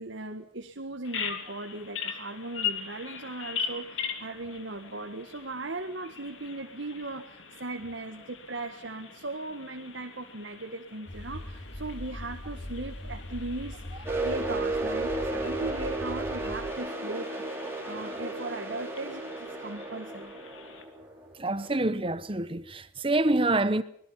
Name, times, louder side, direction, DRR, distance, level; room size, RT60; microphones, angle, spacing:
voice 1, 0.0-17.3 17.9-20.3, right 2 dB, 75° right, 1.7 m, -38 dB
Bird vocalization bird call bird song, 1.0-20.8, left 7 dB, 85° left, 2.9 m, -41 dB
sound 1, 11.1-16.7, left 1 dB, 60° left, 4.6 m, -41 dB
sound 2, 14.1-21.7, right 2 dB, 15° right, 4.4 m, -34 dB
voice 2, 21.4-23.8, right 2 dB, 30° right, 1.0 m, -26 dB
26.0 x 20.5 x 5.7 m
head